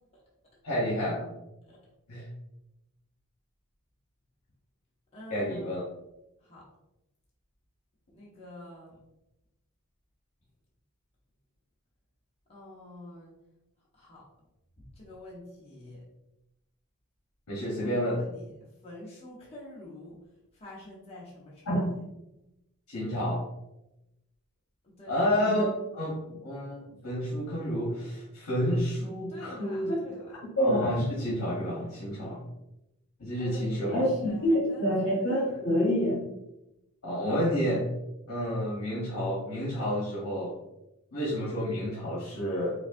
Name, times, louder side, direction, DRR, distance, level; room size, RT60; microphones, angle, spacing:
voice 1, 0.6-1.3 2.1-2.3 5.3-5.8 17.5-18.2 21.7-22.0 22.9-23.4 25.1-29.9 30.6-32.4 33.2-34.5 34.8-36.2 37.0-37.9 38.3-40.5 41.1-42.7, equal, 85° left, -7 dB, 1.1 m, -29 dB
voice 2, 5.1-5.8 6.4-6.7 8.1-9.0 12.5-13.4 13.9-14.3 14.8-16.1 17.8-20.2 20.5-21.8 24.8-25.2 29.3-30.4 33.4-35.6, left 1 dB, 30° left, -6 dB, 0.9 m, -47 dB
4.9 x 2.3 x 2.6 m, 0.91 s
head